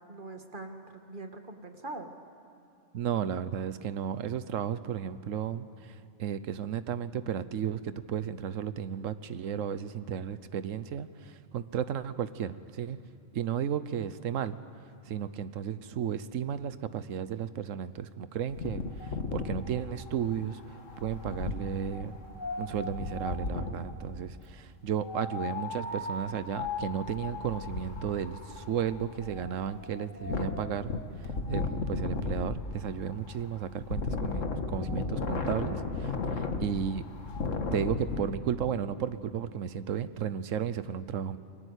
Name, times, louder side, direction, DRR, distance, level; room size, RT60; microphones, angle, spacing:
voice 1, 0.1-2.2, right 2 dB, 40° right, 5 dB, 2.0 m, -42 dB
voice 2, 2.9-13.0 13.3-14.6 15.1-20.6 21.0-22.1 22.6-30.9 31.5-37.0 37.7-41.4, right 8 dB, 80° right, 13 dB, 1.2 m, -34 dB
Wind, 18.5-23.9 25.0-38.2, left 3 dB, 75° left, 1.9 m, -35 dB
29.5 x 23.0 x 8.2 m, 2.6 s
omnidirectional pair, 1.3 m